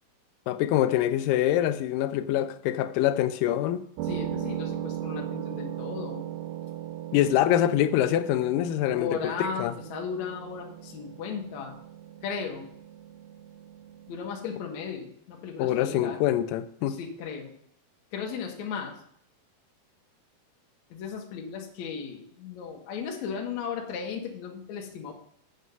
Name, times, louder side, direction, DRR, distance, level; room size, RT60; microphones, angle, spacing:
voice 1, 0.5-3.8 7.1-9.7 15.6-17.0, left 12 dB, 80° left, 2.0 m, -25 dB
voice 2, 4.0-6.3 8.9-11.8 12.2-12.7 14.1-16.2 16.9-17.5 18.1-18.9 20.9-25.2, left 6 dB, 60° left, 2.3 m, -36 dB
sound 1, 4.0-14.2, right 12 dB, 85° right, 2.8 m, -38 dB
8.1 x 6.4 x 5.4 m
omnidirectional pair, 4.4 m